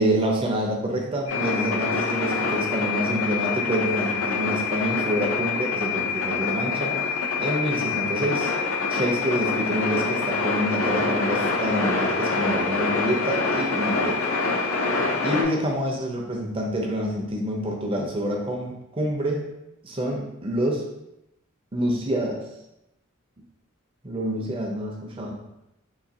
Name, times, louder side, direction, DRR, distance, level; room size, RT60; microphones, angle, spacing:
voice 1, 0.0-6.9 7.4-8.5 8.9-14.2 15.2-19.5 19.8-20.8 21.7-22.4 24.0-25.4, right 1 dB, 25° right, 0 dB, 0.5 m, -27 dB
sound 1, 1.3-15.4, left 4 dB, 70° left, 0.6 m, -25 dB
3.8 x 2.6 x 2.7 m, 0.87 s
head